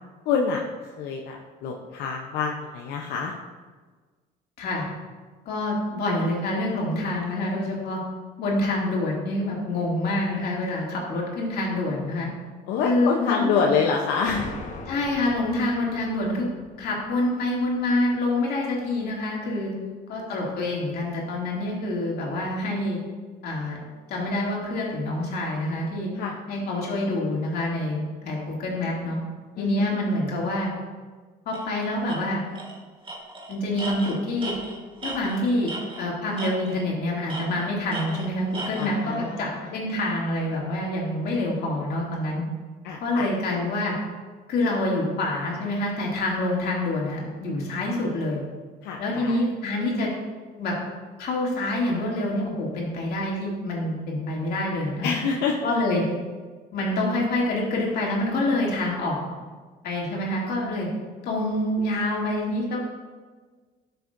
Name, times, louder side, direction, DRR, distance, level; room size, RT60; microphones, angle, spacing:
voice 1, 0.3-3.3 12.7-14.5 19.8-20.3 26.1-26.3 29.6-29.9 38.8-39.8 42.8-43.3 48.8-49.5 55.0-55.7, left 5 dB, 85° left, 0 dB, 0.7 m, -27 dB
voice 2, 5.5-8.0 8.4-12.3 12.8-13.7 14.9-16.5 16.8-19.7 20.1-23.0 23.4-23.8 24.1-26.1 26.5-29.2 29.6-30.7 31.5-32.4 33.5-34.5 35.0-35.7 36.0-42.4 43.0-43.9 44.5-48.4 49.0-50.1 50.6-50.8 51.2-55.1 55.6-56.0 56.7-59.4 59.8-60.9 61.2-62.8, left 1 dB, 70° left, -3 dB, 2.5 m, -26 dB
sound 1, 14.1-18.6, left 3 dB, 45° left, 1.3 m, -41 dB
Tools, 31.5-31.7 32.1-32.2 32.6-32.8 33.1-36.1 36.4-36.9 37.3-38.9, right 2 dB, 30° right, 2.0 m, -36 dB
12.0 x 6.7 x 2.6 m, 1.4 s
cardioid pair, 110°, 17 cm